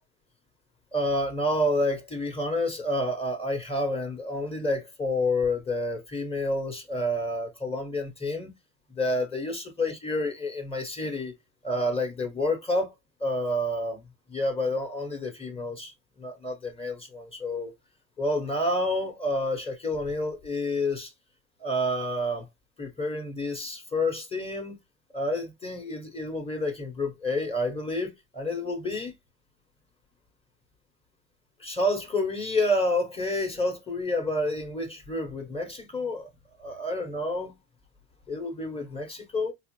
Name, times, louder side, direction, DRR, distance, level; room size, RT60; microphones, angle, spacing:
voice 1, 0.9-8.5 8.9-11.3 11.6-12.9 13.2-14.0 14.3-15.9 16.2-17.7 18.2-21.1 21.6-22.4 22.8-24.8 25.1-29.1 31.6-36.3 36.6-37.5 38.3-39.5, left 1 dB, 15° left, 1.1 m, -29 dB
4.8 x 2.0 x 3.1 m
supercardioid pair, 125°, 40 cm